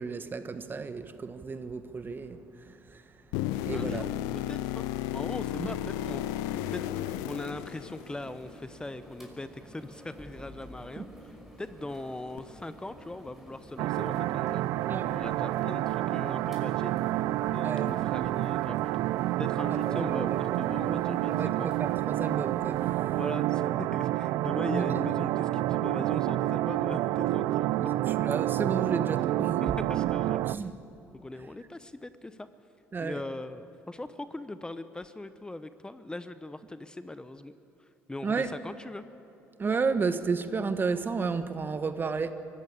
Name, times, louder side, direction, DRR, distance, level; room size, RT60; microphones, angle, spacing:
voice 1, 0.0-3.0 3.7-4.1 5.6-5.8 11.0-11.1 14.9-15.1 17.6-17.9 19.7-23.2 24.7-25.1 27.8-29.8 30.5-30.7 32.9-33.2 38.2-38.5 39.6-42.3, right 4 dB, 35° right, 1.4 m, -33 dB
sound 1, 3.3-8.4 12.4-12.5, left 13 dB, 85° left, 0.6 m, -33 dB
voice 2, 3.7-6.4 6.7-6.8 7.2-11.1 11.6-14.6 15.0-16.9 17.5-19.0 19.4-21.7 23.1-27.9 29.3-30.4 31.2-32.5 33.0-37.6 38.1-39.0, left 2 dB, 15° left, 0.9 m, -40 dB
sound 2, 5.7-22.9, equal, 5° right, 5.8 m, -50 dB
sound 3, 13.8-30.6, right 15 dB, 75° right, 0.4 m, -29 dB
24.0 x 14.5 x 8.7 m
supercardioid pair, 70°, 6 cm